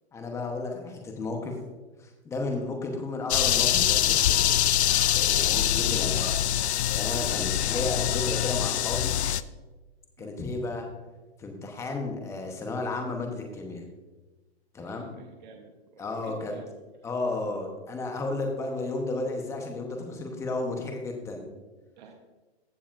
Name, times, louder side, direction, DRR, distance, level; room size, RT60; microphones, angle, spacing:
voice 1, 0.1-1.5 2.0-4.5 5.1-9.1 10.2-10.9 11.4-13.8 14.7-15.2 16.0-16.5 17.0-21.5, left 2 dB, 10° left, 3 dB, 0.9 m, -33 dB
sound 1, 3.3-9.4, left 11 dB, 80° left, 0.5 m, -24 dB
voice 2, 7.1-7.5 10.2-10.3 14.8-16.9 22.0-22.2, right 5 dB, 45° right, 3 dB, 1.0 m, -49 dB
15.0 x 6.8 x 2.5 m, 1.2 s
hypercardioid pair, 150°, 33 cm